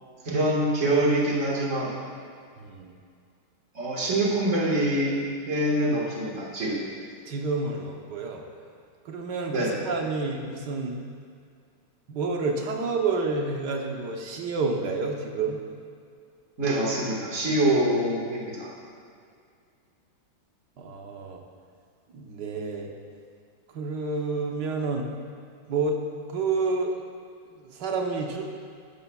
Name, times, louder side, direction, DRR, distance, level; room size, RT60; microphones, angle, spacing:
voice 1, 0.2-1.9 3.7-6.8 9.5-9.7 16.6-18.7, right 1 dB, 40° right, -5 dB, 2.0 m, -25 dB
voice 2, 2.6-2.9 7.2-8.4 9.0-11.0 12.1-15.6 20.8-21.4 22.1-22.9 23.7-25.1 25.7-26.0 26.3-27.0 27.6-28.5, right 3 dB, 65° right, 1 dB, 1.5 m, -29 dB
12.5 x 11.5 x 2.4 m, 2.2 s
omnidirectional pair, 2.1 m